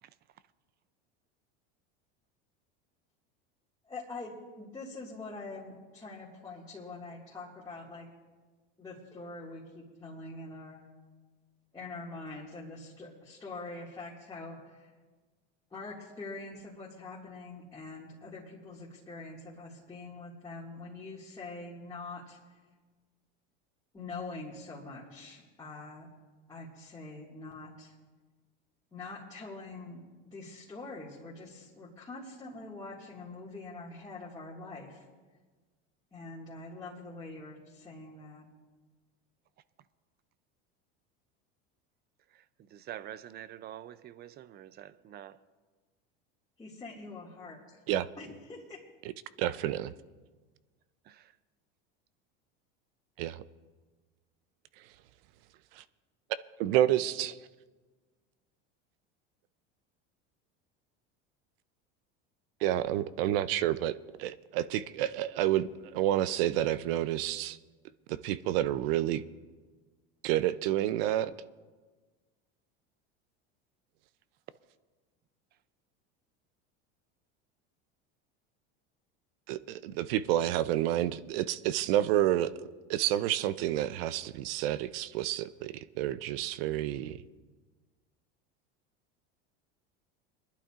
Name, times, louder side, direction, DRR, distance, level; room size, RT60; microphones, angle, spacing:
voice 1, 3.9-8.1 8.8-10.8 11.7-14.9 15.7-22.4 23.9-26.1 26.5-27.9 28.9-35.1 36.1-38.5 46.6-47.8 48.2-48.8, left 3 dB, 15° left, 2.0 m, -44 dB
voice 2, 42.3-45.4 49.5-49.7 51.0-51.4, right 11 dB, 35° right, 0.4 m, -47 dB
voice 3, 49.4-49.9 53.2-53.4 55.8-55.9 56.6-57.4 62.6-67.6 68.1-69.2 70.2-71.3 79.5-82.5 82.9-87.2, right 13 dB, 75° right, 0.6 m, -29 dB
25.0 x 11.5 x 2.5 m
supercardioid pair, 120°, 29 cm